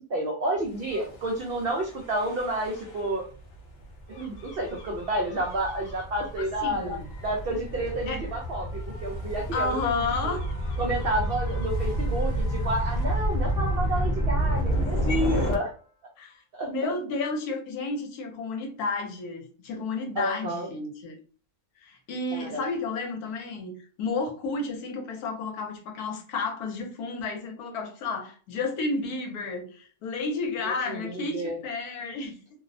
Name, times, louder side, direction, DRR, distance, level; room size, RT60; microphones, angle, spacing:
voice 1, 0.1-3.3 4.1-8.7 9.0-9.8 10.2-10.3 10.8-15.7 16.5-16.7 20.2-20.7 22.3-22.6 30.6-31.6, right 1 dB, 80° right, -1 dB, 0.5 m, -30 dB
Gull seagull / Waves surf / Siren, 0.8-15.6, right 1 dB, 65° left, 0.6 m, -30 dB
voice 2, 6.6-7.1 8.1-8.2 9.5-10.4 15.1-15.6 16.2-21.2 21.8-32.4, left 3 dB, 80° left, 4 dB, 1.1 m, -32 dB
2.7 x 2.0 x 2.5 m, 0.41 s
omnidirectional pair, 1.6 m